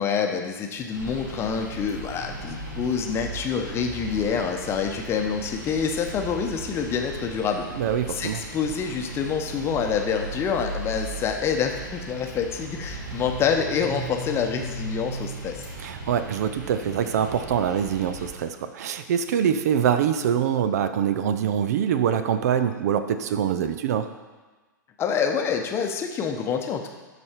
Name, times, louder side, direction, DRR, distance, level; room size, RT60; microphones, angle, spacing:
voice 1, 0.0-7.7 8.1-15.7 25.0-26.9, left 6 dB, 25° left, 4 dB, 0.9 m, -27 dB
sound 1, 0.9-18.3, right 1 dB, 80° right, 2.3 m, -37 dB
voice 2, 7.7-8.4 15.8-24.1, right 8 dB, 50° right, 10 dB, 0.5 m, -24 dB
12.0 x 4.3 x 4.5 m, 1.3 s
figure-of-eight pair, 100°, 11 cm